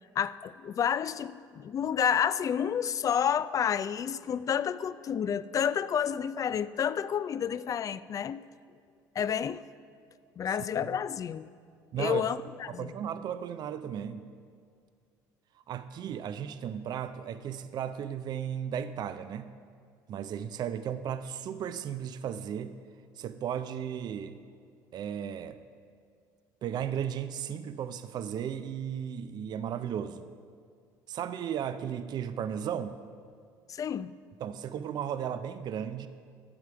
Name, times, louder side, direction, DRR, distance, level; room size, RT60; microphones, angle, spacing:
voice 1, 0.2-8.4 9.2-9.6 10.4-11.5 12.0-12.9 33.7-34.1, left 8 dB, 40° left, 16 dB, 0.4 m, -30 dB
voice 2, 11.9-12.3 12.7-14.3 15.7-19.5 20.1-22.7 23.2-24.4 24.9-25.6 26.6-30.2 31.1-33.0 34.4-36.1, right 9 dB, 50° right, 11 dB, 0.5 m, -35 dB
12.5 x 7.6 x 4.7 m, 2.2 s
supercardioid pair, 85°, 9 cm